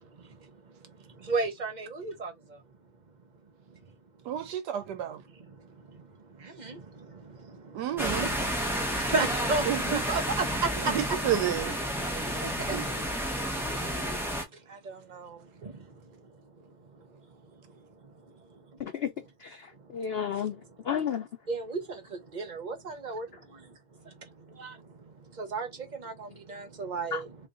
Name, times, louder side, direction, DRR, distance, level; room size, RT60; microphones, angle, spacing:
voice 1, 0.0-0.5 1.0-2.6 3.7-3.8 4.4-4.5 5.3-6.1 6.4-8.4 8.7-10.7 12.4-13.0 14.5-16.1 16.6-17.2 18.0-18.1 18.5-18.6 19.9-20.0 21.5-23.8 24.0-27.4, right 3 dB, 35° right, 0.8 m, -35 dB
voice 2, 4.2-5.2 7.7-8.3 9.7-10.0 10.9-11.8 12.7-12.8 13.2-13.3, right 11 dB, 85° right, 1.4 m, -31 dB
sound 1, 8.0-14.4, equal, ahead, 0.6 m, -31 dB
voice 3, 18.8-19.1 19.4-20.6 20.8-21.3 27.1-27.2, left 8 dB, 75° left, 0.5 m, -32 dB
3.1 x 2.6 x 3.7 m
omnidirectional pair, 1.7 m